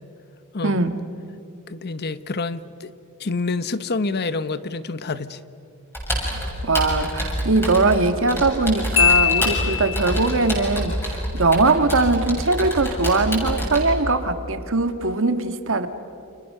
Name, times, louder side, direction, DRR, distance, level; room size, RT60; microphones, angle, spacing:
voice 1, 0.6-0.9 6.2-15.9, right 3 dB, 60° right, 9 dB, 1.8 m, -21 dB
voice 2, 1.7-2.9 3.2-5.4, left 3 dB, 45° left, 14 dB, 0.9 m, -27 dB
Computer keyboard, 5.9-13.8, equal, 10° left, 7.0 m, -27 dB
Marimba xylophone, 9.0-10.4, left 11 dB, 65° left, 2.1 m, -21 dB
30.0 x 27.5 x 6.7 m, 2.7 s
head